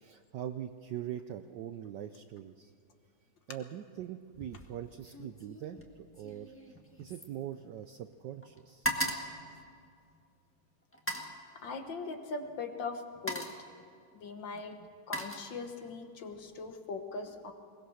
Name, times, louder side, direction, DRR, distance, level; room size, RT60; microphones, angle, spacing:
voice 1, 0.0-2.7 3.5-5.8 6.1-6.5 7.0-8.9, right 10 dB, 70° right, 9 dB, 1.0 m, -42 dB
sound 1, 4.3-4.7 5.0-8.1 8.4-10.3 10.9-11.4 12.4-12.6 13.0-13.7 14.6-16.0 16.3-16.7, right 1 dB, 5° left, 1.3 m, -39 dB
voice 2, 11.6-13.5 14.1-14.8 15.1-17.5, left 4 dB, 60° left, 6 dB, 1.8 m, -40 dB
21.5 x 20.5 x 6.4 m, 2.4 s
omnidirectional pair, 2.4 m